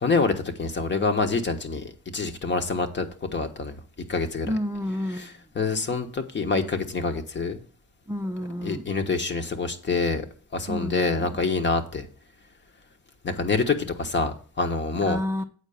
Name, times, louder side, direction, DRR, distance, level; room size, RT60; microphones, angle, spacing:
voice 1, 0.0-3.1 3.3-3.8 4.1-4.5 5.1-7.6 8.6-10.2 10.5-12.1 13.2-15.2, left 4 dB, 35° left, 7 dB, 1.3 m, -26 dB
voice 2, 4.4-5.3 8.1-8.8 10.7-11.3 15.1-15.4, left 1 dB, 10° right, 7 dB, 0.5 m, -29 dB
8.2 x 4.5 x 7.2 m, 0.42 s
cardioid pair, 90°, 30 cm